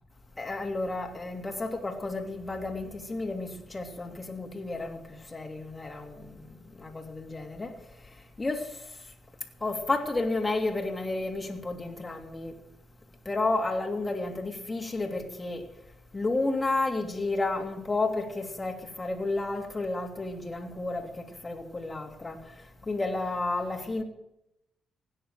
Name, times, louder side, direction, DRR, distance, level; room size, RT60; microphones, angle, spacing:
voice 1, 0.4-6.4 6.8-7.7 8.4-8.8 9.6-12.5 13.2-15.6 16.1-24.0, left 2 dB, 20° left, 3.0 m, -31 dB
16.5 x 10.0 x 7.5 m
cardioid pair, 90°, 0 cm